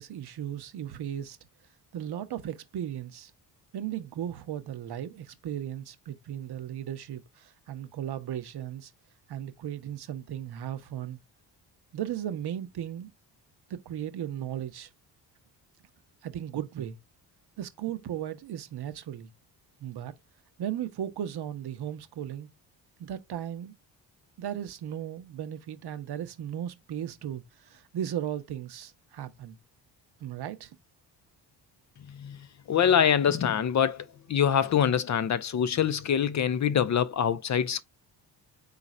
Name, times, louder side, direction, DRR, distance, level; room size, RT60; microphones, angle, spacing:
voice 1, 0.0-1.4 1.9-3.3 3.7-8.9 9.3-11.2 11.9-13.1 13.7-14.9 16.2-17.0 17.6-19.3 19.8-20.1 20.6-22.5 23.0-23.7 24.4-29.6 30.2-30.8, right 10 dB, 60° right, 0.8 m, -36 dB
voice 2, 32.1-32.4 32.7-37.8, left 8 dB, 40° left, 0.5 m, -25 dB
4.0 x 2.5 x 4.0 m
supercardioid pair, 65°, 45 cm